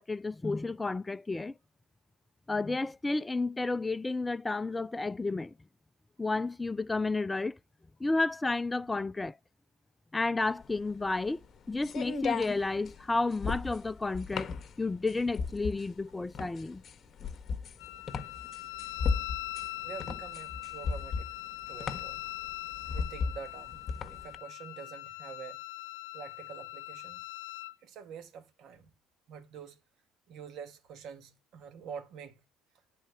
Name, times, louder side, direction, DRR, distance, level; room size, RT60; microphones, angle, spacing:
voice 1, 0.0-1.5 2.5-5.5 6.2-7.6 8.0-9.3 10.1-16.8, left 3 dB, 15° left, 0.4 m, -31 dB
sound 1, 10.5-24.4, left 5 dB, 40° left, 1.4 m, -36 dB
Wind instrument woodwind instrument, 17.8-27.7, left 19 dB, 85° left, 0.5 m, -42 dB
voice 2, 19.8-21.3 21.7-22.2 22.9-23.8 24.1-25.6 26.1-27.2 27.8-28.9 29.3-29.8 30.3-32.4, right 7 dB, 65° right, 2.3 m, -46 dB
10.0 x 4.2 x 6.8 m
supercardioid pair, 75°, 0 cm